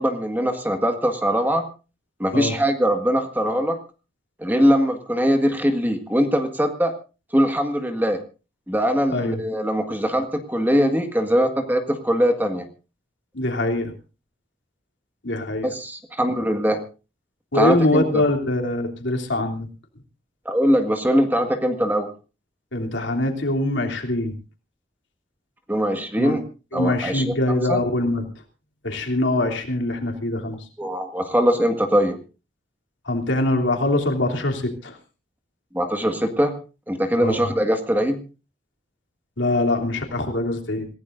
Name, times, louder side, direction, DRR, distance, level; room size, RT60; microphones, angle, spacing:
voice 1, 0.0-1.7 2.2-3.8 4.4-6.9 7.3-8.2 8.7-12.7 15.6-16.8 17.5-18.2 20.5-22.1 25.7-26.4 26.7-27.3 27.7-27.8 30.8-32.2 35.7-36.6 36.9-38.2, equal, 10° right, 5 dB, 1.7 m, -21 dB
voice 2, 13.3-13.9 15.2-15.7 17.5-19.7 22.7-24.3 26.2-26.4 26.7-28.3 28.8-30.6 33.1-35.0 37.2-37.5 39.4-40.9, left 2 dB, 85° left, 2 dB, 3.2 m, -23 dB
27.5 x 15.5 x 2.6 m, 0.34 s
head